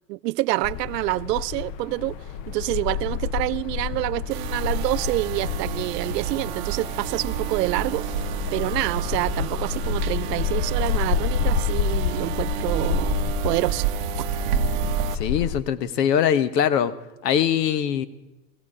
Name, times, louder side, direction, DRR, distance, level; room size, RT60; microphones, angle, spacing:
voice 1, 0.1-2.2 2.5-13.2 13.4-13.9 14.2-14.3, right 18 dB, 75° right, 0.6 m, -27 dB
sound 1, 0.6-15.6, left 7 dB, 35° left, 0.5 m, -29 dB
sound 2, 4.3-15.2, right 12 dB, 40° right, 0.8 m, -30 dB
voice 2, 15.1-16.9 17.2-18.1, left 9 dB, 80° left, 1.1 m, -22 dB
16.0 x 15.5 x 4.9 m
supercardioid pair, 140°, 49 cm